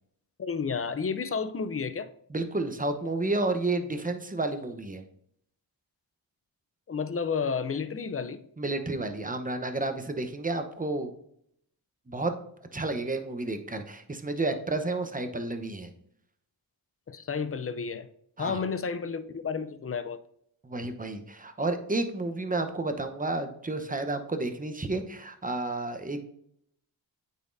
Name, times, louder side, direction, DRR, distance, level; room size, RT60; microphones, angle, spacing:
voice 1, 0.4-2.1 6.9-8.4 17.1-18.1 18.4-20.2, left 5 dB, 30° left, 0.5 m, -31 dB
voice 2, 2.3-5.0 8.6-11.1 12.1-12.3 12.7-15.9 18.4-18.6 20.6-26.2, right 2 dB, 15° right, 0.8 m, -31 dB
9.0 x 4.1 x 2.6 m
cardioid pair, 45°, 47 cm